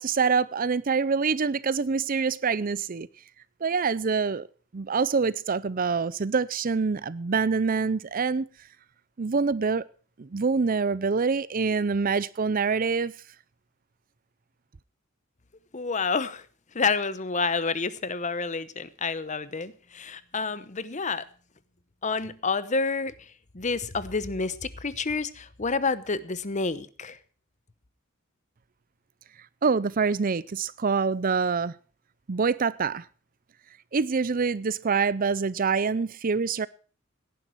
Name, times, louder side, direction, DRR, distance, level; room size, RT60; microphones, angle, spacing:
voice 1, 0.0-3.1 3.6-4.5 4.7-8.5 9.2-9.8 10.2-13.1 29.6-31.7 32.3-33.0 33.9-36.7, right 5 dB, 45° right, 0.5 m, -25 dB
voice 2, 15.7-16.5 16.7-21.2 22.0-27.2, left 4 dB, 35° left, 0.9 m, -29 dB
17.5 x 11.0 x 4.5 m
head